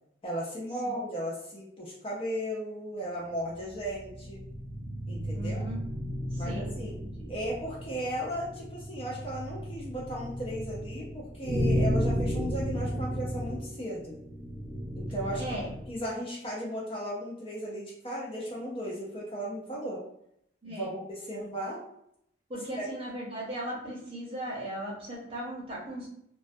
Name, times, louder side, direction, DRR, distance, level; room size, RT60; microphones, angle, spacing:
voice 1, 0.2-4.4 5.1-5.6 6.3-7.0 7.3-14.2 14.9-15.4 15.9-20.0 20.6-21.8 22.8-22.9, equal, 30° left, -4 dB, 0.4 m, -36 dB
sound 1, 3.4-16.0, equal, 75° right, 0.8 m, -34 dB
voice 2, 5.3-5.8 6.3-7.3 15.4-15.7 20.6-20.9 21.3-21.5 22.5-26.1, equal, 30° right, -4 dB, 0.7 m, -38 dB
2.2 x 2.2 x 2.5 m, 0.74 s
head